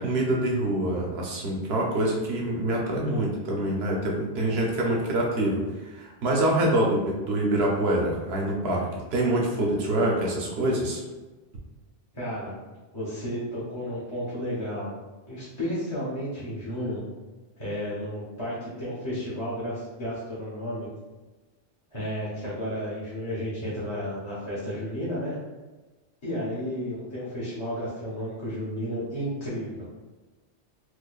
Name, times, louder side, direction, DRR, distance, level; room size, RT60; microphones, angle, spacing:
voice 1, 0.0-11.0, right 1 dB, 65° right, -1 dB, 1.0 m, -25 dB
voice 2, 12.1-12.6 12.9-14.9 15.3-17.0 17.6-20.9 21.9-25.4 26.2-29.9, equal, 30° left, -11 dB, 0.9 m, -32 dB
4.6 x 2.3 x 2.3 m, 1.2 s
omnidirectional pair, 1.2 m